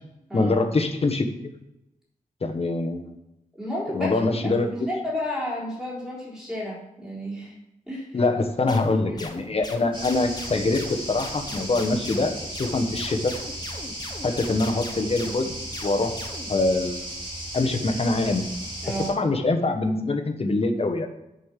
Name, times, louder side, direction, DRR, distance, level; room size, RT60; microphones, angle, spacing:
voice 1, 0.3-1.5 2.4-3.1 3.9-4.7 8.1-13.3 14.2-16.2 16.5-17.1 17.5-18.5 19.1-21.1, left 2 dB, 45° left, 5 dB, 1.3 m, -24 dB
voice 2, 3.5-4.5 4.8-7.5 7.9-8.1 8.6-8.8 9.1-9.3 18.8-19.1, left 1 dB, 5° right, -6 dB, 4.1 m, -32 dB
sound 1, 8.7-16.5, left 2 dB, 30° left, 1.3 m, -40 dB
sound 2, 9.9-19.1, right 1 dB, 35° right, 3.6 m, -36 dB
10.0 x 5.6 x 7.4 m, 0.89 s
wide cardioid pair, 125°, 15 cm